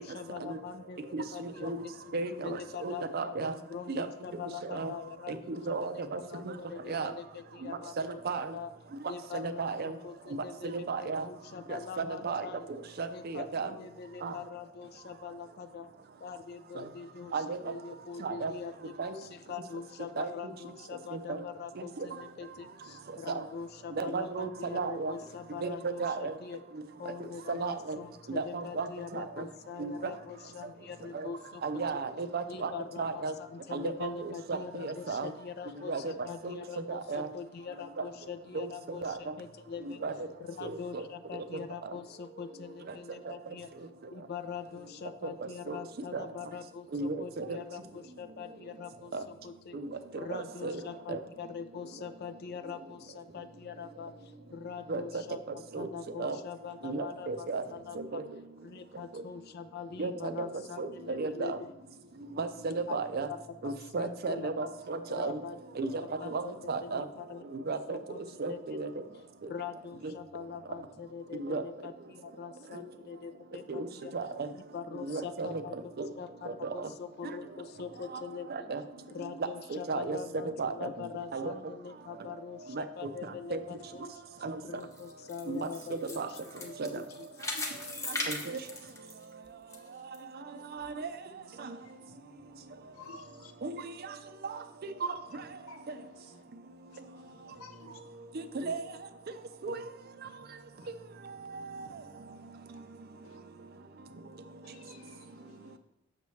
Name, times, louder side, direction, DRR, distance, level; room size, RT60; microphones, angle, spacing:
voice 1, 0.0-3.3 3.7-5.5 5.8-8.7 9.1-12.7 13.1-15.9 16.2-26.6 27.0-31.8 32.5-40.0 40.4-43.7 44.1-49.8 50.2-55.4 55.8-58.2 58.6-61.7 62.9-63.0 63.3-64.5 65.1-65.6 66.0-68.2 68.5-68.8 69.5-74.1 74.5-78.7 79.1-84.1 84.6-87.3 88.1-88.2, left 6 dB, 50° left, 0.3 m, -43 dB
voice 2, 1.1-1.8 2.1-3.5 3.9-4.1 4.7-4.9 5.3-5.4 5.7-6.2 6.9-7.1 8.2-8.4 9.3-9.9 10.7-11.2 11.7-12.4 13.0-13.7 14.2-14.3 17.3-17.6 18.2-18.5 19.0-19.1 20.2-20.3 21.3-21.4 22.0-22.1 23.3-23.4 24.0-25.1 25.6-25.7 26.0-26.3 27.5-28.0 28.3-28.9 29.1-29.4 29.8-29.9 31.6-32.7 33.0-33.3 33.7-35.3 35.9-36.0 36.4-36.6 36.9-37.3 38.5-38.7 39.0-39.1 40.0-40.1 40.6-41.0 45.7-45.8 46.1-46.2 46.9-47.6 49.1-49.2 49.7-49.8 50.3-50.8 51.1-51.2 54.9-55.0 55.7-55.9 56.2-56.4 56.8-57.6 58.1-58.2 60.0-60.5 60.8-61.6 62.4-63.3 63.6-65.4 65.8-65.9 66.3-66.4 66.7-67.0 67.7-68.0 68.4-68.9 71.4-71.6 73.7-73.8 74.1-74.5 75.1-75.6 76.0-76.1 76.8-76.9 78.5-78.8 79.9-80.2 80.6-80.9 81.3-81.5 82.8-82.9 83.5-83.6 84.4-84.6 85.5-85.6 86.2-86.3 86.8-86.9 88.3-88.4 90.8-91.1 93.6-93.8 98.6-98.8 99.6-99.8, right 4 dB, 45° right, 0.5 m, -34 dB
sound 1, 84.8-89.8 90.1-90.2 90.8-90.9, left 2 dB, 15° left, 0.8 m, -38 dB
voice 3, 91.6-92.1 92.9-93.5 95.7-95.9 96.3-96.4 96.9-98.0 100.3-100.4 100.8-100.9 103.2-103.4 104.6-105.8, left 3 dB, 85° left, 0.8 m, -54 dB
6.9 x 6.5 x 3.1 m
head